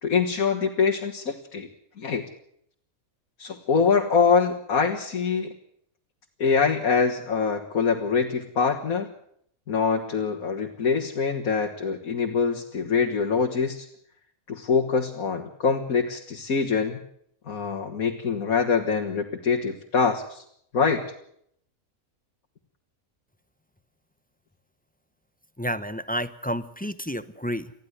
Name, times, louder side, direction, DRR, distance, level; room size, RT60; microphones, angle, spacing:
voice 1, 0.0-1.7 2.0-2.2 3.4-5.5 6.4-9.1 9.7-13.9 14.5-17.0 17.5-20.4 20.7-21.1, left 5 dB, 75° left, 1 dB, 2.1 m, -24 dB
voice 2, 25.6-27.7, equal, 10° left, 14 dB, 0.5 m, -30 dB
20.0 x 14.5 x 9.4 m, 0.69 s
omnidirectional pair, 1.5 m